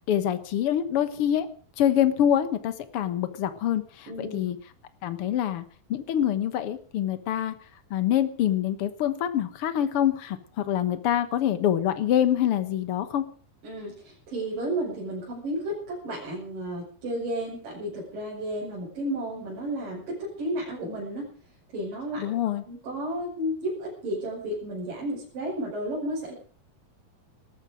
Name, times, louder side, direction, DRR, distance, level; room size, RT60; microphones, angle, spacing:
voice 1, 0.1-1.5 1.8-4.6 5.0-5.6 5.9-7.5 7.9-13.2 22.2-22.6, left 10 dB, 70° left, 11 dB, 1.4 m, -25 dB
voice 2, 4.1-4.4 13.6-21.3 21.7-22.2 22.7-26.3, right 1 dB, 60° right, -5 dB, 7.5 m, -32 dB
19.0 x 14.0 x 5.1 m, 0.41 s
omnidirectional pair, 4.4 m